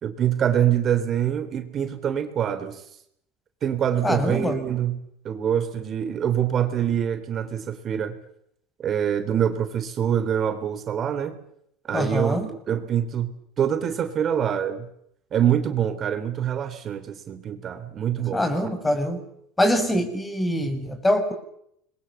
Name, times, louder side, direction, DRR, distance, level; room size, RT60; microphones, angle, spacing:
voice 1, 0.0-2.9 3.6-8.2 8.8-11.4 11.8-14.9 15.3-18.5, right 9 dB, 40° right, 9 dB, 3.6 m, -25 dB
voice 2, 4.0-4.6 11.9-12.5 18.3-19.2 19.6-21.3, left 1 dB, 10° left, 10 dB, 6.3 m, -24 dB
28.5 x 22.5 x 7.2 m, 0.72 s
hypercardioid pair, 80°, 0 cm